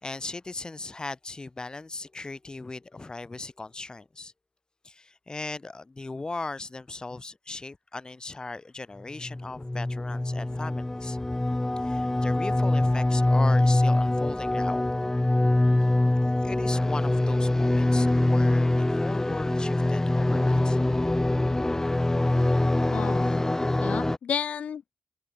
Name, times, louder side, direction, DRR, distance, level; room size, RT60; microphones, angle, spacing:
voice 1, 0.0-4.3 4.8-11.2 11.8-15.1 16.4-20.8, left 3 dB, 35° left, 3.3 m, -38 dB
sound 1, 9.2-24.2, left 2 dB, 20° left, 2.5 m, -24 dB
voice 2, 22.9-23.4 23.8-25.0, left 7 dB, 90° left, 1.4 m, -32 dB
cardioid pair, 50°, 2 cm